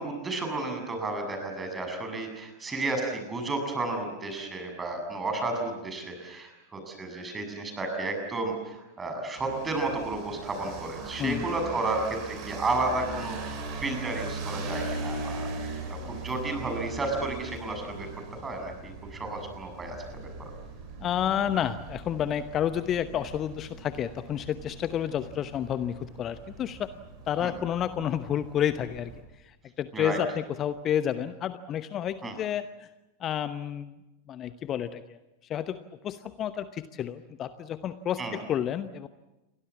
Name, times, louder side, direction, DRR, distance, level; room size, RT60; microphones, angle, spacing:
voice 1, 0.0-12.2 12.5-15.5 16.0-18.1 18.3-20.0 20.4-20.5 27.4-27.5 29.9-30.2 32.2-32.3 38.2-38.4, right 2 dB, 15° right, 4 dB, 7.3 m, -32 dB
sound 1, 9.4-29.2, right 3 dB, 40° right, 7.5 m, -40 dB
voice 2, 21.0-26.9 27.3-29.1 29.4-32.9 33.2-33.9 34.3-35.2 35.5-35.8 36.0-39.1, left 10 dB, 30° left, 13 dB, 0.9 m, -30 dB
29.5 x 23.5 x 7.4 m, 0.99 s
figure-of-eight pair, 90°, 0 cm